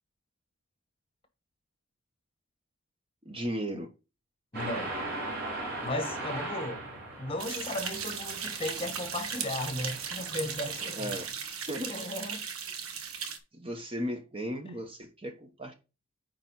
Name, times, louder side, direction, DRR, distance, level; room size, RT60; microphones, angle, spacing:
voice 1, 3.2-3.9 11.0-11.2 11.7-11.9 13.5-15.7, equal, 25° right, 1.1 m, -35 dB
voice 2, 4.5-4.9 5.8-6.9 7.2-11.1 11.9-12.4, left 1 dB, 25° left, 1.1 m, -35 dB
sound 1, 4.5-11.3, right 2 dB, 45° right, 4.2 m, -39 dB
sound 2, 7.4-13.4, right 6 dB, 80° right, 1.1 m, -37 dB
9.2 x 4.6 x 4.1 m
head